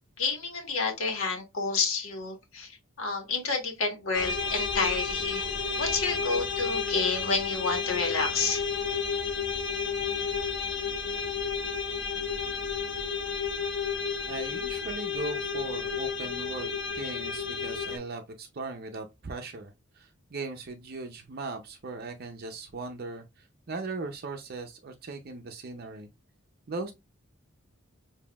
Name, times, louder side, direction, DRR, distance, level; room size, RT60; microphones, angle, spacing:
voice 1, 0.2-8.6, left 4 dB, 80° left, 1.4 m, -30 dB
sound 1, 4.1-18.0, left 5 dB, 55° left, 1.5 m, -31 dB
voice 2, 14.3-26.1 26.7-26.9, right 3 dB, 45° right, 0.5 m, -38 dB
7.0 x 2.7 x 2.3 m
head